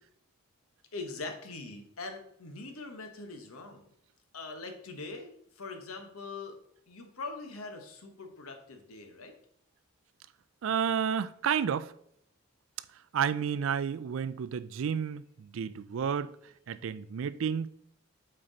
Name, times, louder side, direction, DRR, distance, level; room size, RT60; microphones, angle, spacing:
voice 1, 0.9-3.9 4.3-6.6 6.9-9.3, left 3 dB, 85° left, 1.1 m, -42 dB
voice 2, 10.6-11.9 13.1-16.3 16.7-17.7, right 7 dB, 70° right, 0.3 m, -31 dB
7.6 x 4.5 x 3.9 m
head